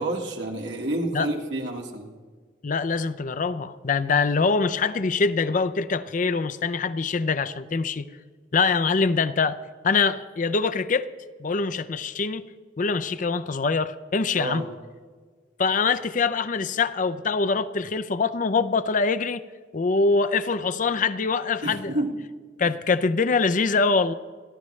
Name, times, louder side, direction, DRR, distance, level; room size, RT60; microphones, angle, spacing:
voice 1, 0.0-2.1 14.4-14.7 21.6-22.1, right 1 dB, 75° right, 1 dB, 1.9 m, -29 dB
voice 2, 2.6-8.1 8.5-9.6 9.8-11.1 11.4-12.4 12.8-14.7 15.6-19.4 19.7-21.9 22.6-24.1, left 4 dB, 45° left, 12 dB, 0.5 m, -24 dB
28.5 x 11.0 x 3.2 m, 1.5 s
head